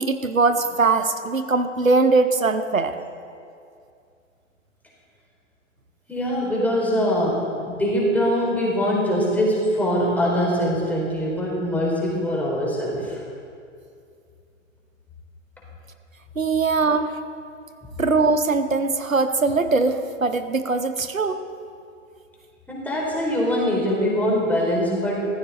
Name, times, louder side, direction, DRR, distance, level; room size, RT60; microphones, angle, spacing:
voice 1, 0.0-3.0 6.6-6.7 16.4-17.2 18.0-21.4, right 3 dB, 90° right, 9 dB, 0.9 m, -21 dB
voice 2, 6.1-7.4 7.7-13.2 22.7-25.2, equal, 5° left, -4 dB, 4.1 m, -23 dB
15.0 x 14.5 x 4.3 m, 2.3 s
figure-of-eight pair, 110°, 39 cm